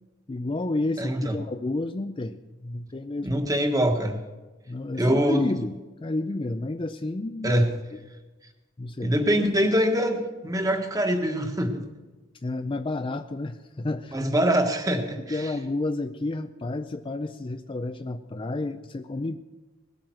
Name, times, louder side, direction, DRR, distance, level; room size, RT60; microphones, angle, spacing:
voice 1, 0.3-3.4 4.7-7.6 8.8-9.5 12.4-14.2 15.3-19.4, left 2 dB, 25° left, 9 dB, 0.5 m, -31 dB
voice 2, 1.0-1.4 3.2-4.2 5.0-5.4 7.4-7.7 9.0-11.9 14.1-15.5, equal, 20° right, 5 dB, 1.6 m, -24 dB
19.5 x 8.7 x 6.3 m, 1.2 s
head